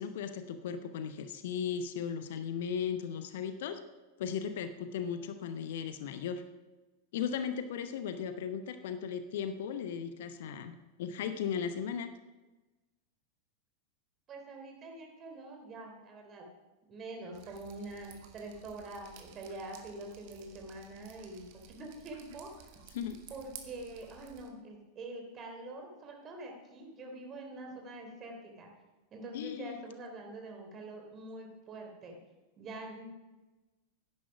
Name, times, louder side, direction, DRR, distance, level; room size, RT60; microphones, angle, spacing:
voice 1, 0.0-3.8 4.2-6.4 7.1-12.1 22.9-23.2 29.3-29.8, left 7 dB, 55° left, 10 dB, 0.9 m, -36 dB
voice 2, 14.3-16.5 16.9-22.7 23.3-28.7 29.1-32.2 32.6-33.1, right 2 dB, 30° right, 2 dB, 3.3 m, -45 dB
Drip, 17.3-24.5, right 9 dB, 45° right, 1.6 m, -54 dB
11.0 x 10.0 x 5.8 m, 1.1 s
figure-of-eight pair, 90°, 0 cm